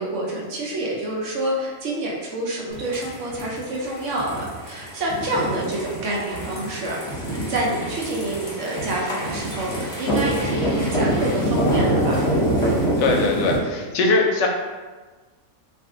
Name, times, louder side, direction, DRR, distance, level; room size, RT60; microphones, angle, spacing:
voice 1, 0.0-7.2 7.5-12.2, right 1 dB, 65° right, -3 dB, 1.0 m, -27 dB
sound 1, 2.7-13.5, right 1 dB, 20° left, 0.9 m, -25 dB
voice 2, 13.0-14.5, left 3 dB, 70° left, 1 dB, 0.8 m, -20 dB
2.5 x 2.5 x 3.6 m, 1.3 s
omnidirectional pair, 1.5 m